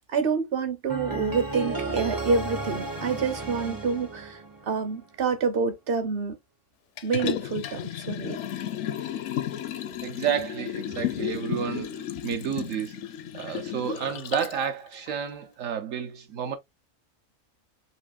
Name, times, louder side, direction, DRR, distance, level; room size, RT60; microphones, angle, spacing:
voice 1, 0.1-4.4 4.7-6.4 7.0-8.4, right 5 dB, 50° right, 0.9 m, -27 dB
sound 1, 0.9-5.0, right 3 dB, 25° right, 0.4 m, -33 dB
Liquid, 7.0-14.6 15.1-15.2, left 10 dB, 65° left, 0.8 m, -33 dB
voice 2, 10.0-13.0 13.3-16.6, right 8 dB, 70° right, 1.1 m, -31 dB
4.8 x 2.7 x 2.4 m
omnidirectional pair, 1.4 m